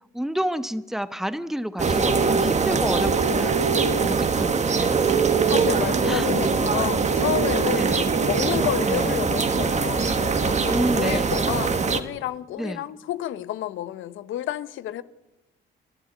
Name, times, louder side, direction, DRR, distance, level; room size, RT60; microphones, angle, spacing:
voice 1, 0.1-3.7 4.0-5.2 6.0-6.3 7.7-8.1 8.8-9.1 10.7-11.4 12.6-12.8, equal, ahead, 1.2 m, -30 dB
sound 1, 1.8-12.0, right 5 dB, 35° right, 1.7 m, -22 dB
voice 2, 5.4-15.0, left 12 dB, 80° left, 1.0 m, -30 dB
28.5 x 13.0 x 9.3 m
cardioid pair, 90°, 20 cm